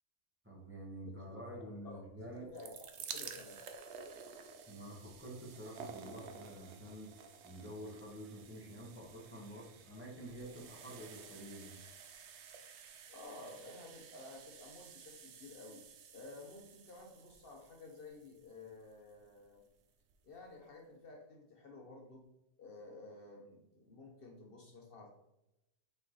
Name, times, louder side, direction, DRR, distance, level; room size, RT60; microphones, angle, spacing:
voice 1, 0.4-2.5 4.7-11.7, right 1 dB, 10° right, -5 dB, 1.7 m, -48 dB
voice 2, 1.8-3.7 13.1-15.8 16.1-19.7 20.2-22.2 22.6-25.1, left 2 dB, 55° left, 0 dB, 1.1 m, -53 dB
sound 1, 2.3-19.3 20.1-20.2 20.4-20.5, right 6 dB, 75° right, 0.9 m, -52 dB
5.6 x 4.2 x 4.0 m, 0.88 s
omnidirectional pair, 1.2 m